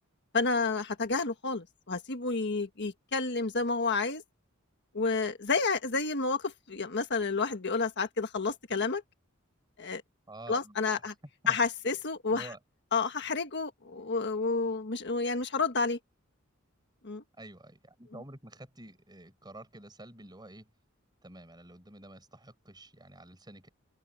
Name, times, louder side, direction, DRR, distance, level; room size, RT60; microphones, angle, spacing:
voice 1, 0.3-4.2 4.9-9.0 9.8-10.0 10.5-11.1 11.5-12.5 12.9-16.0 17.0-17.2, left 4 dB, 55° left, 1.6 m, -30 dB
voice 2, 10.3-10.8 11.4-11.6 12.3-12.6 17.4-20.7 21.2-23.7, right 1 dB, 20° right, 6.6 m, -49 dB
open air
head